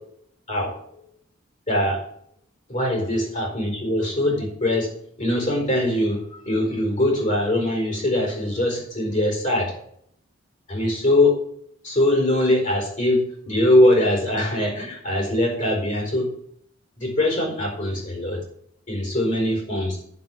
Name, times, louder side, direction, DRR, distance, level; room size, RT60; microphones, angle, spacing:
voice 1, 1.7-2.0 2.7-4.9 5.2-9.7 10.7-11.4 11.8-16.3 17.0-18.4 18.9-20.0, left 1 dB, 40° left, 0 dB, 4.6 m, -22 dB
9.6 x 7.4 x 6.3 m, 0.68 s
head